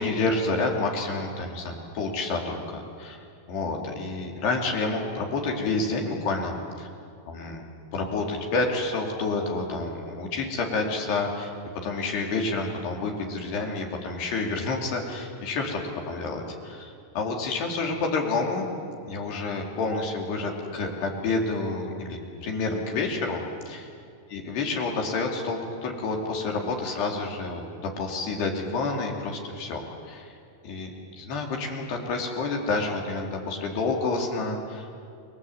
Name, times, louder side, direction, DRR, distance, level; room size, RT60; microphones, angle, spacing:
voice 1, 0.0-6.9 7.3-7.6 7.9-11.5 11.8-15.8 16.1-18.7 19.1-23.9 24.3-30.3 30.6-30.9 31.2-34.9, left 3 dB, 80° left, 0 dB, 4.9 m, -29 dB
29.0 x 21.5 x 8.0 m, 2.3 s
omnidirectional pair, 4.7 m